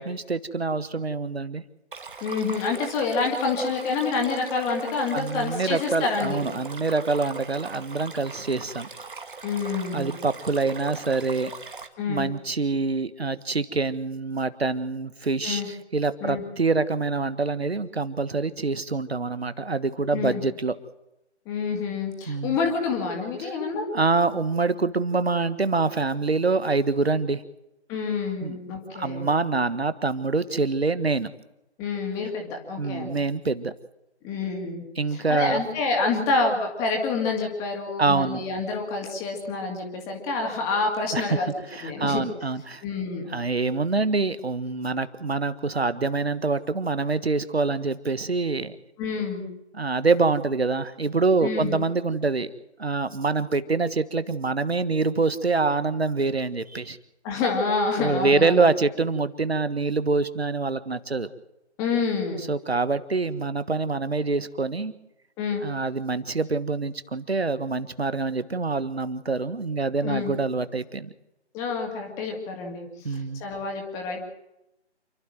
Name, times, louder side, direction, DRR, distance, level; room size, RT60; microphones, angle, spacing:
voice 1, 0.0-1.6 5.1-8.9 9.9-11.5 12.1-20.7 22.3-22.6 23.4-23.5 23.9-27.4 28.4-28.6 28.9-31.3 32.8-33.7 35.0-35.6 38.0-38.4 41.1-42.8 43.3-48.8 49.7-52.5 52.8-57.0 58.0-61.3 62.5-64.9 65.6-71.1 73.0-73.4, right 3 dB, 65° right, 13 dB, 1.6 m, -25 dB
Stream, 1.9-11.9, right 4 dB, 50° right, 2.2 m, -40 dB
voice 2, 2.2-6.4 9.4-10.1 12.0-12.3 15.4-15.7 16.2-16.4 20.1-20.4 21.5-23.9 27.9-29.3 31.8-33.1 34.2-34.8 35.1-41.5 41.8-42.2 42.8-43.2 49.0-49.5 51.4-51.8 57.2-58.6 61.8-62.4 65.4-65.7 70.0-70.3 71.5-74.2, left 4 dB, 10° left, 2 dB, 2.3 m, -27 dB
28.5 x 12.5 x 7.7 m, 0.88 s
figure-of-eight pair, 155°, 34 cm